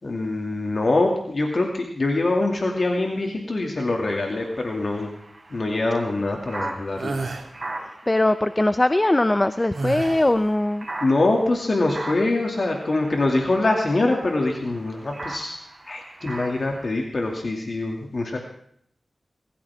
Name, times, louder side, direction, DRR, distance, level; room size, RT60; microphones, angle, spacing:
voice 1, 0.0-5.1 5.5-7.2 11.0-15.6 15.9-18.4, left 2 dB, 55° left, 1 dB, 2.4 m, -24 dB
sound 1, 3.8-16.9, right 2 dB, 45° right, 3.9 m, -40 dB
sound 2, 7.0-7.5 9.7-10.4, right 3 dB, 70° right, 2.0 m, -29 dB
voice 2, 7.8-10.9, left 1 dB, 25° left, 12 dB, 0.6 m, -21 dB
22.5 x 14.0 x 3.6 m, 0.66 s
cardioid pair, 55°, 0 cm